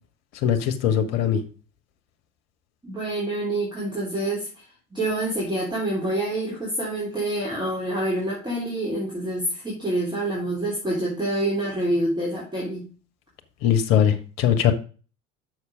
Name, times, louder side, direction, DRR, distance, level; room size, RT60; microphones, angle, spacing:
voice 1, 0.4-1.4 13.6-14.7, left 9 dB, 55° left, 7 dB, 1.4 m, -20 dB
voice 2, 2.8-4.6 4.9-12.9, right 1 dB, 10° right, -5 dB, 3.5 m, -27 dB
6.5 x 6.3 x 5.2 m, 0.36 s
figure-of-eight pair, 70°, 39 cm